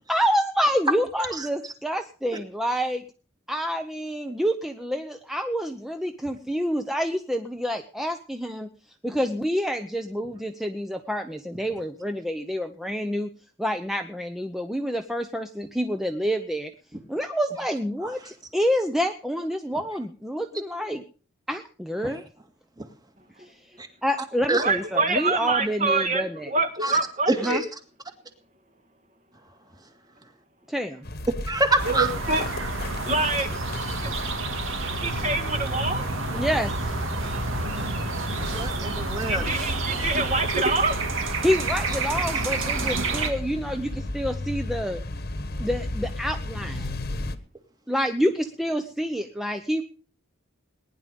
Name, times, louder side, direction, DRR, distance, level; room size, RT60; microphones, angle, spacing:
voice 1, 0.1-3.0 3.5-8.7 9.0-13.3 13.6-16.7 17.1-21.0 21.5-22.2 23.4-23.6 24.0-26.5 27.4-27.6 30.7-31.0 36.3-36.7 41.4-45.0 45.6-46.9 47.9-49.8, equal, ahead, 6 dB, 0.7 m, -27 dB
voice 2, 24.6-27.6 31.9-32.5 33.1-33.5 34.0-34.1 35.0-36.1 39.3-40.9, right 3 dB, 35° right, 7 dB, 1.6 m, -25 dB
voice 3, 27.3-27.6 31.5-32.1 38.4-39.5 42.3-42.4 42.8-43.0, right 2 dB, 20° right, 6 dB, 1.9 m, -26 dB
sound 1, 31.0-47.4, left 1 dB, 50° left, 1.3 m, -34 dB
sound 2, 31.8-43.3, right 3 dB, 75° right, 2.3 m, -29 dB
19.5 x 10.5 x 5.2 m, 0.41 s
head